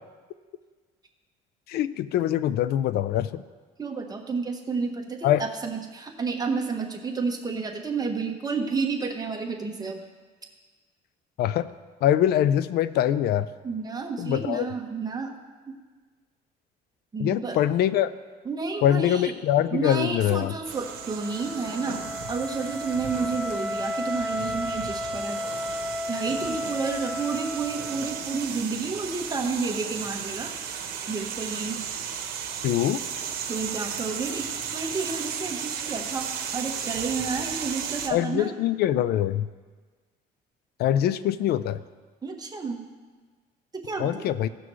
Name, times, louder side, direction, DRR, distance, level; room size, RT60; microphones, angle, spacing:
voice 1, 1.7-3.4 5.2-5.5 11.4-11.7 12.0-13.5 14.2-14.7 17.2-18.1 18.8-20.5 32.6-33.0 38.1-39.5 40.8-41.8 44.0-44.5, left 11 dB, 70° left, 15 dB, 0.5 m, -23 dB
voice 2, 3.8-10.0 13.6-15.4 17.1-17.6 18.4-19.3 19.7-25.4 26.1-30.5 31.1-31.8 33.5-38.5 42.2-42.9 43.7-44.2, right 4 dB, 25° right, 2 dB, 1.2 m, -31 dB
Wind instrument woodwind instrument, 20.4-28.4, left 1 dB, ahead, 0.5 m, -33 dB
sound 1, 20.6-38.1, right 7 dB, 65° right, 1.1 m, -35 dB
16.0 x 6.1 x 3.1 m, 1.4 s
cardioid pair, 110°, 17 cm